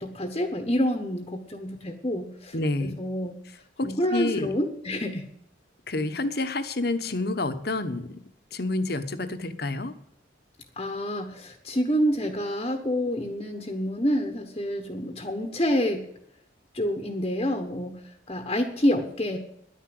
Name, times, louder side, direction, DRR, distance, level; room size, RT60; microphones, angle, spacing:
voice 1, 0.0-2.5 2.8-3.4 3.8-5.3 10.8-16.0 16.7-18.0 18.3-19.4, equal, 25° left, 5 dB, 1.2 m, -27 dB
voice 2, 2.5-2.9 3.8-4.5 5.9-8.2 8.5-9.9, left 2 dB, 55° left, 10 dB, 1.2 m, -28 dB
11.0 x 10.0 x 7.8 m, 0.72 s
head